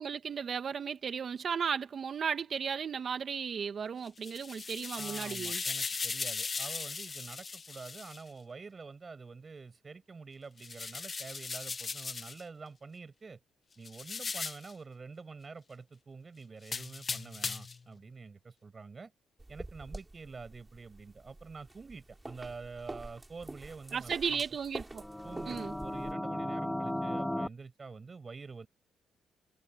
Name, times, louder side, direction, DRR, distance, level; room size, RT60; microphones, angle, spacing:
voice 1, 0.0-5.6 23.9-25.0 25.5-25.8, right 6 dB, 50° right, 2.1 m, -35 dB
sound 1, 4.1-8.2 10.6-12.4 13.8-14.7 16.6-17.8, left 4 dB, 35° left, 1.0 m, -38 dB
voice 2, 4.9-13.4 13.8-19.1 19.5-24.4 25.2-28.7, right 4 dB, 35° right, 6.6 m, -47 dB
sound 2, 19.4-26.1, right 2 dB, 15° right, 6.3 m, -47 dB
sound 3, 24.9-27.5, left 1 dB, 5° left, 3.3 m, -35 dB
cardioid pair, 90°, 0 cm